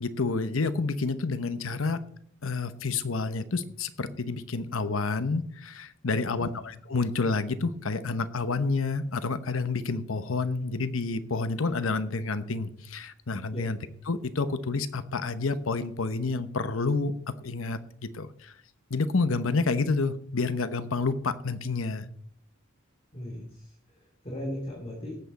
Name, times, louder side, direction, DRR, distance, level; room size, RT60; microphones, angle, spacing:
voice 1, 0.0-2.0 2.4-13.8 14.1-17.1 17.4-18.5 18.9-22.0, left 3 dB, 75° left, 12 dB, 0.9 m, -29 dB
voice 2, 6.1-6.5 13.5-13.6 23.1-23.7 24.2-25.2, left 1 dB, 30° left, -3 dB, 2.9 m, -37 dB
18.0 x 8.2 x 4.1 m, 0.64 s
head